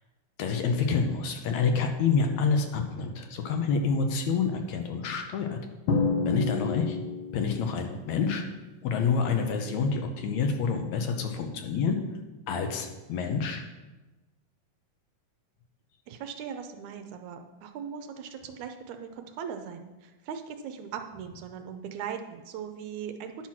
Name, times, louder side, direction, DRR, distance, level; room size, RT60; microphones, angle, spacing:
voice 1, 0.4-5.6 6.3-7.0 7.3-8.4 8.8-12.0 12.5-13.6, left 5 dB, 70° left, 4 dB, 2.0 m, -27 dB
Drum, 5.9-7.6, left 4 dB, 90° left, 2.7 m, -28 dB
voice 2, 16.1-23.5, right 7 dB, 75° right, 6 dB, 1.9 m, -39 dB
10.5 x 6.0 x 5.8 m, 1.1 s
omnidirectional pair, 3.6 m